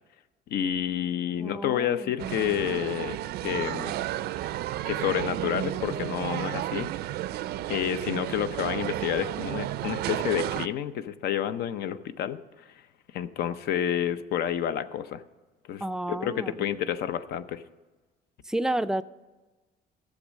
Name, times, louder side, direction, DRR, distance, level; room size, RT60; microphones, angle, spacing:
voice 1, 0.5-3.9 4.9-7.1 7.7-12.8 13.1-15.2 15.7-15.8 16.1-17.6, left 10 dB, 70° left, 13 dB, 0.6 m, -29 dB
voice 2, 1.4-2.1 15.8-16.5 18.5-19.0, right 1 dB, 5° right, 12 dB, 0.3 m, -30 dB
sound 1, 2.2-10.7, right 14 dB, 75° right, 0.4 m, -32 dB
13.5 x 7.2 x 6.3 m, 1.2 s
cardioid pair, 110°, 17 cm